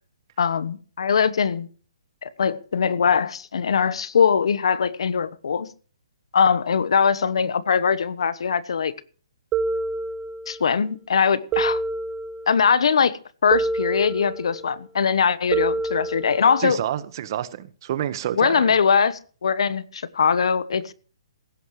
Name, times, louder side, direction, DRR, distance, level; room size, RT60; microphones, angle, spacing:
voice 1, 0.4-1.7 2.2-5.7 6.3-8.9 10.5-11.8 12.5-16.8 18.4-20.8, left 6 dB, 70° left, 16 dB, 1.1 m, -21 dB
sound 1, 9.5-10.7 11.5-12.7 13.5-14.7 15.5-16.7, right 3 dB, 20° right, 1.1 m, -27 dB
voice 2, 16.6-18.6, right 11 dB, 45° right, 13 dB, 1.4 m, -28 dB
16.5 x 14.5 x 3.2 m, 0.41 s
hypercardioid pair, 145°, 3 cm